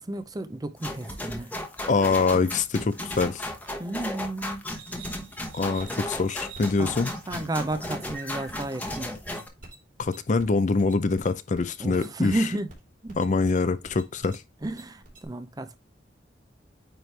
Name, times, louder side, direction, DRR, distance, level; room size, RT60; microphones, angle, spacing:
voice 1, 0.1-1.5 3.8-4.6 6.8-6.9 7.3-9.2 11.8-12.7 13.0-13.2 14.6-15.8, right 1 dB, 20° right, 0.5 m, -32 dB
sound 1, 0.8-9.5, left 1 dB, 10° left, 1.0 m, -35 dB
voice 2, 1.9-3.5 5.5-7.1 10.0-12.4 13.2-14.4, left 4 dB, 40° left, 0.5 m, -24 dB
sound 2, 4.7-15.3, right 3 dB, 45° right, 3.1 m, -47 dB
9.1 x 3.2 x 3.2 m
head